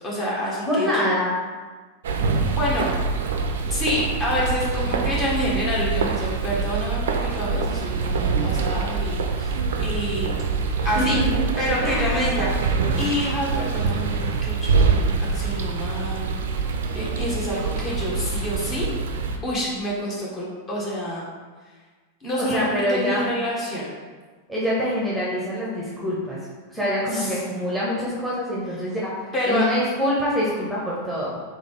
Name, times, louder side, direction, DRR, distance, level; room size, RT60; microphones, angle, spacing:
voice 1, 0.0-1.2 2.5-2.9 3.7-10.4 10.8-11.2 11.6-18.9 19.4-21.2 22.2-23.8 27.1-27.4 29.3-29.7, equal, 25° left, -6 dB, 1.4 m, -28 dB
voice 2, 0.7-1.3 10.7-11.5 11.8-12.2 22.5-23.2 24.5-26.4 26.7-31.4, equal, ahead, -7 dB, 1.1 m, -25 dB
sound 1, 2.0-19.4, right 4 dB, 60° right, 0.4 m, -25 dB
4.0 x 3.5 x 3.4 m, 1.4 s
figure-of-eight pair, 90°, 0 cm